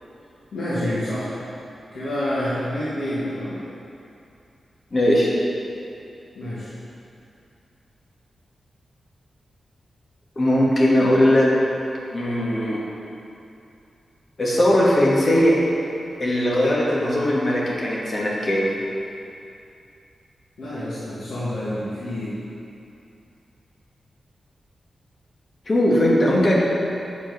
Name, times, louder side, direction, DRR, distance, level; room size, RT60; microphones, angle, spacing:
voice 1, 0.5-1.3 1.9-3.6 6.4-6.7 20.6-22.4, left 1 dB, 90° left, -11 dB, 1.7 m, -28 dB
voice 2, 4.9-5.3 10.4-11.5 12.1-12.8 14.4-15.6 16.2-18.7 25.7-26.6, left 1 dB, 35° left, -5 dB, 1.4 m, -19 dB
7.1 x 5.0 x 5.3 m, 2.7 s
wide cardioid pair, 155°, 0 cm